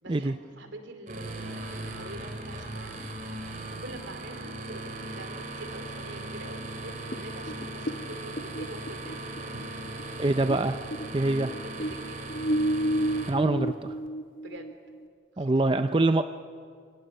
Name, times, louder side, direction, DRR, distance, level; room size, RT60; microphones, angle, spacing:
voice 1, 0.0-9.6 11.5-12.2 14.4-14.7 15.3-15.8, right 2 dB, 80° right, 6 dB, 2.8 m, -45 dB
sound 1, 1.1-13.3, right 2 dB, 45° right, 2.9 m, -38 dB
sound 2, 7.1-10.6 10.9-15.0, right 1 dB, 45° left, 0.8 m, -31 dB
voice 2, 10.2-10.8 11.1-11.5 13.3-14.0 15.4-16.2, right 2 dB, 25° right, 9 dB, 0.5 m, -24 dB
27.5 x 25.0 x 5.5 m, 2.1 s
head